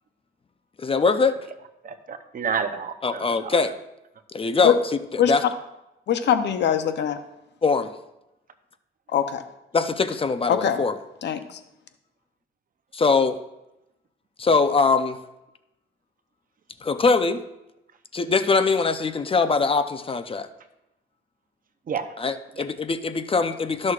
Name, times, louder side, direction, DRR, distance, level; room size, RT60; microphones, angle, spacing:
voice 1, 0.8-1.4 3.0-3.7 4.3-5.4 7.6-7.9 9.7-11.0 12.9-13.4 14.4-15.2 16.8-17.4 18.1-20.5 22.2-23.9, left 4 dB, 30° left, 10 dB, 0.6 m, -22 dB
voice 2, 1.8-3.7 21.9-22.2 22.5-22.6, right 6 dB, 45° right, 9 dB, 0.8 m, -30 dB
voice 3, 6.1-7.2 9.1-9.4 10.5-10.8 11.2-11.4, left 9 dB, 60° left, 9 dB, 0.8 m, -21 dB
13.0 x 6.3 x 2.5 m, 0.90 s
cardioid pair, 90°, 20 cm